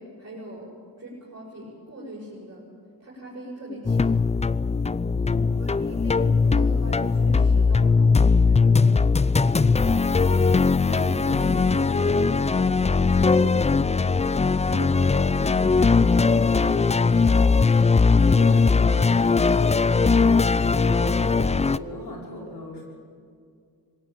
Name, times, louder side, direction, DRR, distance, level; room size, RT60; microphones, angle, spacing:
voice 1, 0.0-2.6 3.0-4.2 5.6-9.0 10.2-13.0 13.4-14.0 14.7-17.7 18.1-18.8, equal, 40° right, -6 dB, 6.8 m, -39 dB
sound 1, 3.9-21.8, left 4 dB, 15° left, 0.4 m, -20 dB
voice 2, 4.9-5.7 18.1-22.8, left 1 dB, 75° left, -2 dB, 5.4 m, -39 dB
21.0 x 17.5 x 8.7 m, 2.3 s
cardioid pair, 60°, 41 cm